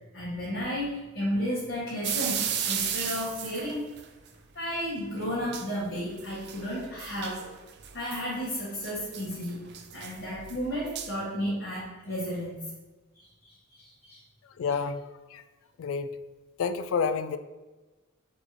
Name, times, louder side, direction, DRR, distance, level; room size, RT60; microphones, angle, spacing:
voice 1, 0.1-3.8 4.5-7.4 7.9-9.6 9.9-12.6 13.1-14.2, equal, 50° left, -12 dB, 1.5 m, -33 dB
sound 1, 2.0-4.0 5.2-5.3 5.5-5.7 6.0-8.2 8.8-11.1, right 8 dB, 55° right, 0.4 m, -34 dB
voice 2, 14.4-15.0 15.3-15.4 15.8-16.1 16.6-17.4, left 5 dB, 70° left, 11 dB, 0.3 m, -29 dB
4.3 x 3.0 x 3.1 m, 1.2 s
head